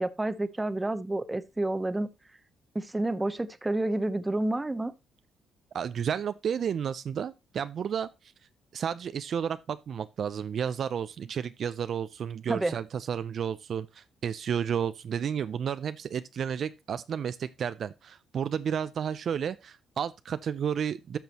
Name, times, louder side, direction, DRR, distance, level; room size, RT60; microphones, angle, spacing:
voice 1, 0.0-2.1 2.7-4.9 12.5-12.7, right 2 dB, 15° right, 0.8 m, -29 dB
voice 2, 5.7-8.1 8.7-21.2, right 8 dB, 60° right, 0.4 m, -32 dB
12.5 x 6.0 x 2.9 m
cardioid pair, 90°, 0 cm